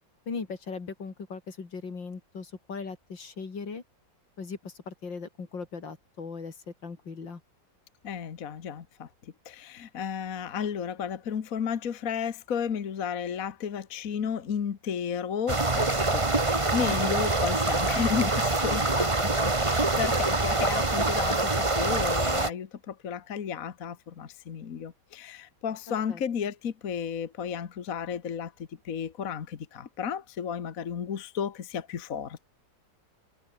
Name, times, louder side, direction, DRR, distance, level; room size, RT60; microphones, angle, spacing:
voice 1, 0.3-3.8 4.4-7.4 16.8-17.2 25.9-26.2, left 5 dB, 80° left, 3.8 m, -39 dB
voice 2, 8.0-28.5 28.9-32.5, left 7 dB, 50° left, 1.6 m, -33 dB
sound 1, 15.5-22.5, right 2 dB, 15° right, 1.6 m, -25 dB
omnidirectional pair, 2.0 m